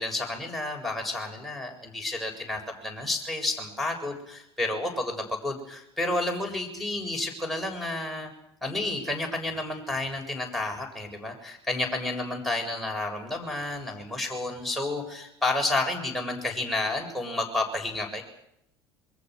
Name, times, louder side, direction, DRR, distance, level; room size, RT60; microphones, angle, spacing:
voice 1, 0.0-8.3 8.6-18.2, left 2 dB, ahead, 0 dB, 7.7 m, -31 dB
28.0 x 23.5 x 6.6 m, 0.77 s
hypercardioid pair, 70°, 14 cm